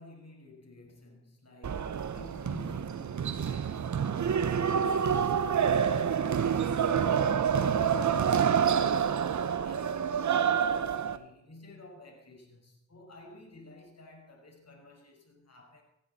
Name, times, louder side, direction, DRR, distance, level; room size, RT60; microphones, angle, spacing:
voice 1, 0.0-15.8, left 2 dB, 60° left, 1 dB, 5.5 m, -52 dB
sound 1, 1.6-11.2, right 7 dB, 75° right, 1.0 m, -27 dB
17.5 x 16.5 x 4.3 m, 0.81 s
cardioid pair, 50°, 29 cm